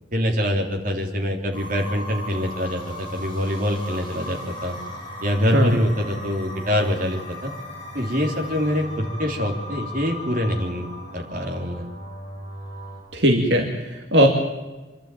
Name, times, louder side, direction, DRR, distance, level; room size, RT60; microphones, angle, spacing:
voice 1, 0.1-4.8 5.2-7.5 7.9-11.8, equal, 50° right, 1 dB, 3.2 m, -25 dB
sound 1, 1.5-13.0, left 1 dB, 25° left, 7.0 m, -36 dB
voice 2, 13.1-14.3, equal, 70° right, 2 dB, 2.4 m, -19 dB
26.0 x 12.0 x 9.1 m, 1.2 s
head